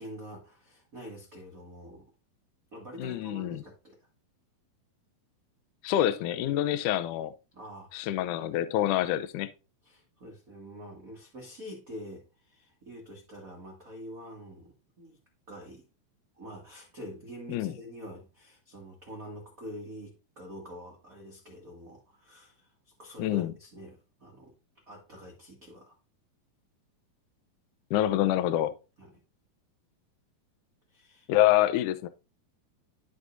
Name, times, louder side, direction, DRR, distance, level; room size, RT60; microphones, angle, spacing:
voice 1, 0.0-2.1 2.7-4.0 7.5-8.0 9.8-15.2 15.5-15.9 16.4-24.5 24.9-26.0 29.0-29.1 30.9-31.3 31.6-31.7, equal, 60° right, 0.8 m, -46 dB
voice 2, 3.0-3.6 5.8-7.3 7.9-9.5 17.5-17.7 23.2-23.5 27.9-28.7 31.3-32.1, left 13 dB, 85° left, 1.8 m, -26 dB
12.5 x 5.0 x 2.6 m
omnidirectional pair, 4.4 m